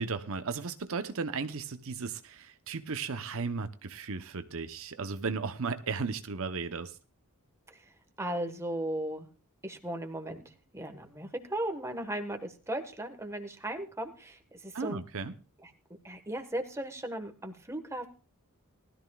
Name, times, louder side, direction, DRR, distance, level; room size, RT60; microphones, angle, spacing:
voice 1, 0.0-7.0 14.7-15.3, right 4 dB, 65° right, 0.8 m, -35 dB
voice 2, 8.2-9.3 9.6-10.4 10.7-15.0 15.6-15.7 16.0-18.1, right 1 dB, 15° right, 1.3 m, -36 dB
19.5 x 13.0 x 2.3 m
head